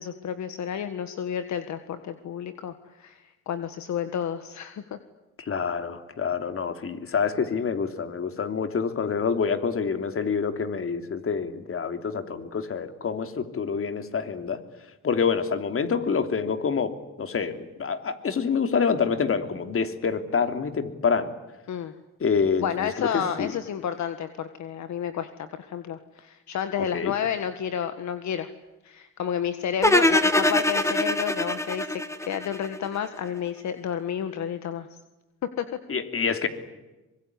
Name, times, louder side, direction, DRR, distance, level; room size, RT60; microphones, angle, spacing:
voice 1, 0.0-5.0 21.7-21.9 22.6-28.5 28.8-31.9 32.3-34.9 35.6-35.8, left 8 dB, 65° left, 10 dB, 1.7 m, -31 dB
voice 2, 5.4-14.6 15.0-21.3 22.2-23.5 26.8-27.1 35.9-36.5, left 6 dB, 45° left, 8 dB, 3.1 m, -27 dB
sound 1, 29.8-33.0, left 1 dB, 10° left, 2.2 m, -23 dB
25.0 x 22.5 x 9.7 m, 1.1 s
cardioid pair, 90°, 30 cm